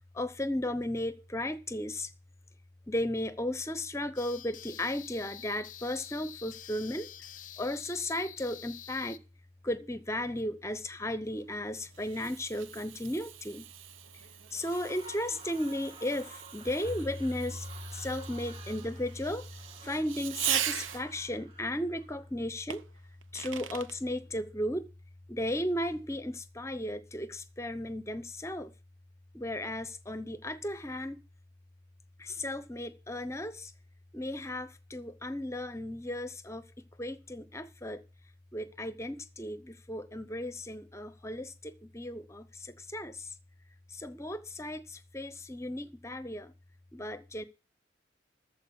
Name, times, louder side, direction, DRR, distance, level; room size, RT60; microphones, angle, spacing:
voice 1, 0.1-2.1 2.9-7.1 7.6-9.2 9.6-13.7 14.5-19.5 19.8-22.8 23.3-24.9 25.3-28.7 29.3-31.2 32.2-33.7 34.1-38.0 38.5-43.3 43.9-46.5 46.9-47.4, left 1 dB, 15° left, 0.8 m, -35 dB
sound 1, 4.2-9.2, left 10 dB, 45° left, 0.6 m, -47 dB
Fireworks, 11.3-21.3 22.7-24.0, right 10 dB, 80° right, 0.7 m, -40 dB
sound 2, 14.5-22.6, right 2 dB, 30° right, 2.1 m, -52 dB
14.0 x 4.7 x 8.5 m
head